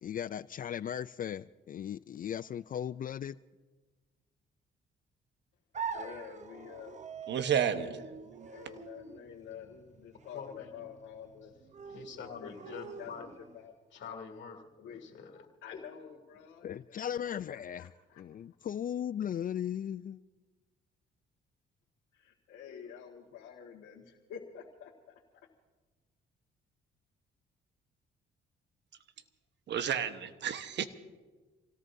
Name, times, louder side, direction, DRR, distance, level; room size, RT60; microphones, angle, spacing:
voice 1, 0.0-3.4 16.6-17.9 18.2-20.2, left 9 dB, 45° left, 0.4 m, -37 dB
sound 1, 5.7-13.7, right 6 dB, 35° right, 0.9 m, -45 dB
voice 2, 5.9-7.0 8.5-11.5 12.4-13.3 13.5-13.7 14.8-15.0 15.6-18.2 22.1-24.9, left 8 dB, 85° left, 1.8 m, -48 dB
voice 3, 7.3-8.7 29.7-30.9, right 8 dB, 65° right, 1.2 m, -32 dB
voice 4, 10.3-10.7 11.8-13.3 13.9-15.5 15.7-15.8, left 6 dB, 70° left, 2.9 m, -46 dB
27.5 x 17.5 x 2.7 m
cardioid pair, 90°, 20 cm